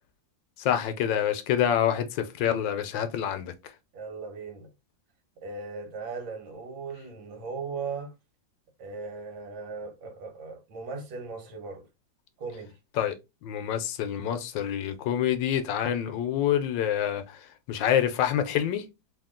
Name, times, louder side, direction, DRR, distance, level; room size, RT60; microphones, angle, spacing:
voice 1, 0.6-3.5 13.0-13.1 13.4-18.8, left 10 dB, 80° left, 1.3 m, -27 dB
voice 2, 3.9-4.7 5.4-8.1 8.8-11.9 12.4-12.8, right 4 dB, 85° right, 1.9 m, -38 dB
3.5 x 2.7 x 3.6 m
omnidirectional pair, 2.1 m